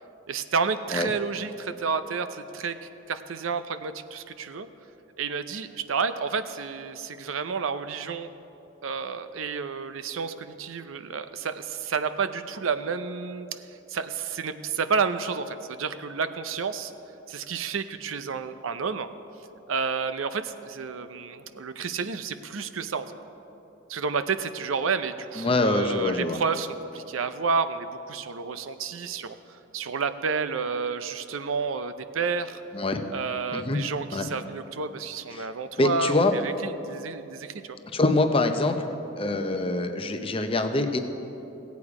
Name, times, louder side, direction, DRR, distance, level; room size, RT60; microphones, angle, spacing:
voice 1, 0.3-4.7 5.2-8.3 8.8-13.6 13.9-16.9 17.3-19.1 19.7-23.1 23.9-32.6 33.1-37.8, right 5 dB, 85° right, 11 dB, 0.6 m, -30 dB
voice 2, 25.4-26.4 32.7-33.0 33.5-33.8 34.1-34.3 35.4-35.5 35.8-36.3 37.9-38.8 39.2-41.0, left 2 dB, 25° left, 7 dB, 0.6 m, -24 dB
16.5 x 8.4 x 4.8 m, 3.0 s
head